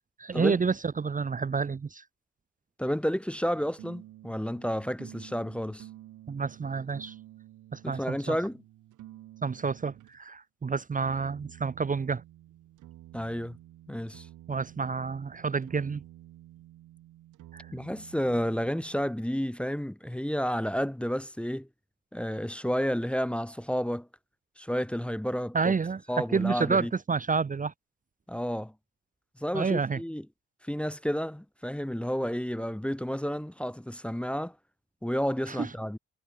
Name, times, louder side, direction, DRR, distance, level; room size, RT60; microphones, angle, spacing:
voice 1, 0.2-2.0 6.3-7.1 7.7-8.4 9.4-12.2 14.5-16.0 17.5-17.7 25.5-26.0 26.3-27.7 29.5-30.0 35.5-35.7, right 5 dB, 25° right, 0.9 m, -29 dB
voice 2, 2.8-5.9 7.8-8.6 13.1-13.6 13.9-14.3 17.7-21.7 22.1-24.1 24.6-25.7 26.1-26.9 28.3-28.7 29.4-30.3 30.6-34.6 35.0-36.0, equal, 5° left, 1.1 m, -31 dB
sound 1, 3.5-10.2 11.0-19.1, right 14 dB, 80° right, 2.4 m, -51 dB
cardioid pair, 90°, 30 cm